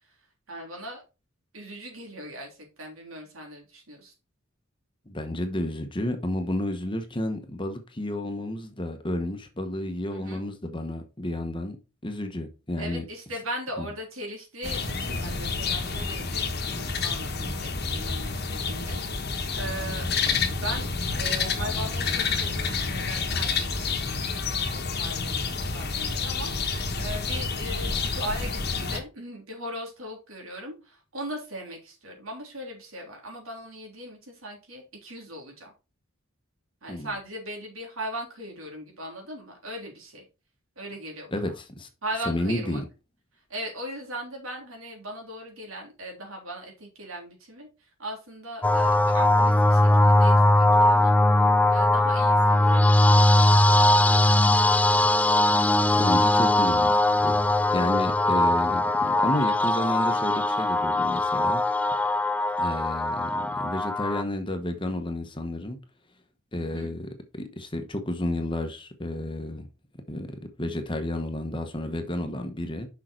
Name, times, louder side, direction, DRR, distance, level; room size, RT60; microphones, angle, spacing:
voice 1, 0.0-1.0 1.5-4.1 10.1-10.4 12.8-20.1 20.5-35.7 36.8-40.3 40.8-41.6 42.0-42.8 43.3-56.2 66.6-67.0, right 1 dB, 80° right, 3.4 m, -39 dB
voice 2, 5.1-11.8 12.0-13.0 13.8-13.9 36.9-37.1 41.3-41.9 42.3-42.8 56.0-61.6 62.6-65.8 66.5-67.0 67.3-69.7 70.1-70.3 70.6-72.9, left 1 dB, 25° left, 1.1 m, -31 dB
sound 1, 14.6-29.0, left 4 dB, 50° left, 1.3 m, -29 dB
sound 2, 48.6-64.2, left 1 dB, 5° left, 0.3 m, -20 dB
6.4 x 5.7 x 4.4 m
head